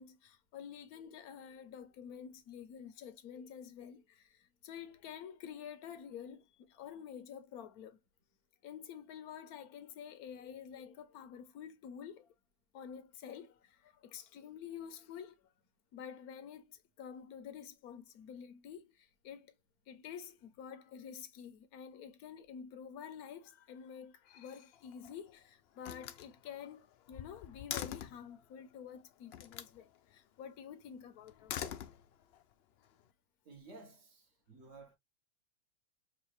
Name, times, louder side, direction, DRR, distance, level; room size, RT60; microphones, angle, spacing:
voice 1, 0.0-8.0 8.6-12.3 12.7-15.5 15.9-19.6 19.9-31.8, left 8 dB, 85° left, 1.2 m, -49 dB
Slam, 24.7-25.3 25.8-28.3 29.3-29.8 31.3-32.4, left 10 dB, 70° left, 0.6 m, -44 dB
voice 2, 33.4-35.0, right 3 dB, 60° right, 1.4 m, -55 dB
4.8 x 2.4 x 3.1 m
omnidirectional pair, 1.5 m